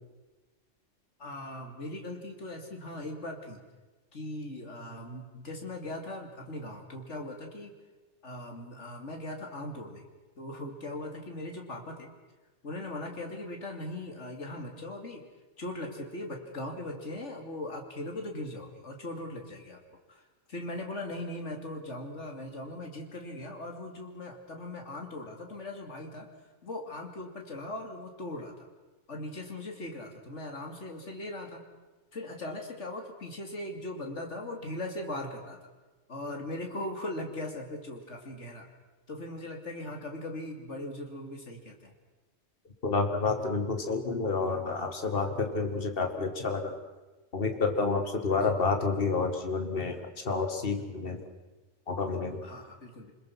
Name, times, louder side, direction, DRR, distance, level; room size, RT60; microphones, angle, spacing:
voice 1, 1.2-3.6 4.1-7.7 8.2-10.0 10.4-12.1 12.6-15.2 15.6-19.8 20.1-20.2 20.5-26.3 26.6-28.5 29.1-31.6 32.1-35.6 36.1-38.7 39.1-41.9 48.3-48.6 52.4-53.1, left 1 dB, 70° left, 2 dB, 3.2 m, -39 dB
voice 2, 42.8-46.7 47.3-50.0 50.2-51.3 51.9-52.4, left 4 dB, 45° left, 5 dB, 2.3 m, -29 dB
30.0 x 21.0 x 6.0 m, 1.2 s
omnidirectional pair, 1.3 m